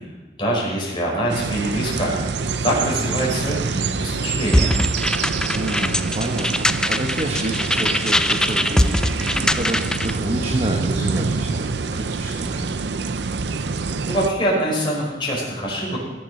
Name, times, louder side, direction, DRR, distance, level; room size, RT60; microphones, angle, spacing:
voice 1, 0.4-2.1 2.6-4.8 14.1-16.0, right 1 dB, 30° left, -4 dB, 5.6 m, -24 dB
sound 1, 1.3-14.3, right 4 dB, 70° right, 0.6 m, -26 dB
sound 2, 4.5-10.2, left 1 dB, 5° left, 0.3 m, -22 dB
voice 2, 5.5-12.8, right 1 dB, 35° right, 1 dB, 1.1 m, -29 dB
18.0 x 7.5 x 5.6 m, 1.2 s
head